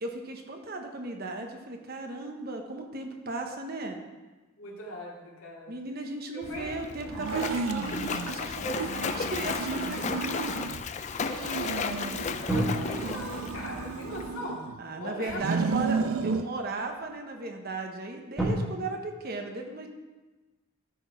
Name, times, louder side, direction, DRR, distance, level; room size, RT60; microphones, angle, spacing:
voice 1, 0.0-4.0 5.7-10.5 14.8-19.9, right 2 dB, 45° right, 4 dB, 0.9 m, -36 dB
voice 2, 4.5-5.8 6.5-6.8 7.3-7.6 8.6-9.4 9.7-10.1 11.2-14.6 15.0-15.4, equal, 80° left, -3 dB, 2.2 m, -39 dB
Splash splatter, 6.4-14.3, left 5 dB, 35° left, 0.3 m, -35 dB
sound 1, 7.0-9.6 12.5-15.8 16.5-16.6 18.4-18.5, right 1 dB, ahead, 1.5 m, -36 dB
sound 2, 7.1-8.4 8.8-10.8 11.2-12.5 12.9-14.8 15.3-16.5, right 4 dB, 75° right, 0.4 m, -33 dB
12.5 x 4.4 x 4.5 m, 1.2 s
head